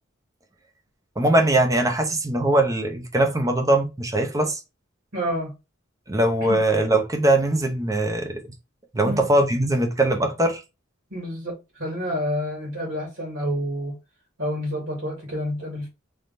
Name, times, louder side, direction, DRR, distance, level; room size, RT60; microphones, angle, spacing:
voice 1, 1.2-4.6 6.1-8.4 8.9-10.6, right 1 dB, 20° right, 0.7 m, -21 dB
voice 2, 5.1-5.5 6.5-6.6 9.0-9.3 11.1-14.0 14.4-15.9, equal, 70° right, 2.1 m, -29 dB
3.6 x 3.2 x 2.5 m
head